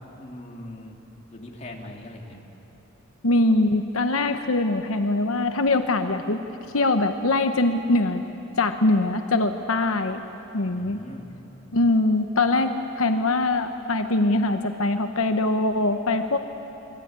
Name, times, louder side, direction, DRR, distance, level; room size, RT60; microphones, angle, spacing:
voice 1, 0.2-0.9 1.3-2.4 10.8-11.3, left 1 dB, 35° left, -1 dB, 3.1 m, -40 dB
voice 2, 3.2-6.4 6.7-8.2 8.6-10.2 10.5-11.0 11.7-16.4, left 2 dB, 85° left, 6 dB, 1.1 m, -22 dB
27.0 x 22.0 x 9.7 m, 3.0 s
head